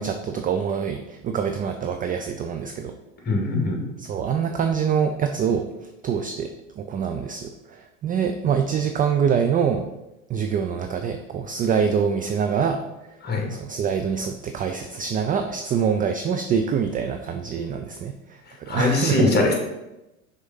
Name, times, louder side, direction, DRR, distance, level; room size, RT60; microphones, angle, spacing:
voice 1, 0.0-2.9 4.0-5.6 6.0-9.9 10.3-12.8 13.5-19.3, right 7 dB, 20° right, 6 dB, 0.4 m, -25 dB
voice 2, 3.3-3.8 13.2-13.5 18.7-19.5, left 2 dB, 25° left, 1 dB, 2.1 m, -21 dB
6.2 x 3.6 x 5.4 m, 0.97 s
hypercardioid pair, 90°, 41 cm